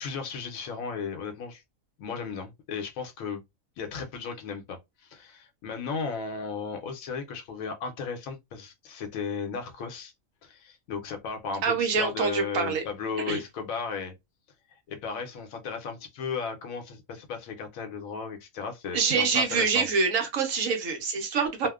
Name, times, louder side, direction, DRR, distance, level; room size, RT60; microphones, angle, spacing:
voice 1, 0.0-1.6 2.0-3.4 3.8-10.1 10.4-14.1 14.7-19.8, left 5 dB, 80° left, 1.1 m, -35 dB
voice 2, 11.6-12.8 13.3-13.4 18.9-21.7, right 5 dB, 70° right, 1.1 m, -25 dB
2.8 x 2.1 x 2.3 m
omnidirectional pair, 1.4 m